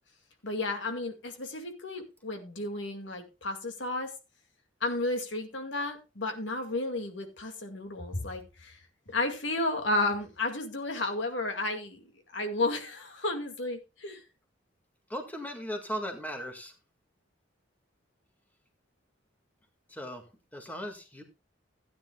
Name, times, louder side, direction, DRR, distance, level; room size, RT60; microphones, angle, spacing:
voice 1, 0.4-4.1 4.8-8.8 9.1-12.0 12.3-14.2, left 2 dB, 70° left, 4 dB, 2.2 m, -32 dB
voice 2, 15.1-16.7 19.9-21.2, equal, 10° left, 4 dB, 1.9 m, -38 dB
16.5 x 9.8 x 2.3 m, 0.29 s
head